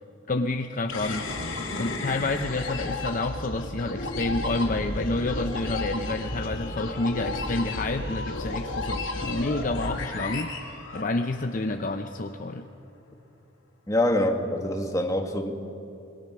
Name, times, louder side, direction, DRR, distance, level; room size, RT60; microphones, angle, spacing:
voice 1, 0.3-1.3 1.8-10.6 10.9-12.7, left 2 dB, 40° left, 6 dB, 0.7 m, -29 dB
sound 1, 0.9-11.5, left 2 dB, 80° left, 3.1 m, -33 dB
voice 2, 13.9-15.6, left 1 dB, 15° left, 4 dB, 1.7 m, -25 dB
27.0 x 21.5 x 6.1 m, 2.7 s
head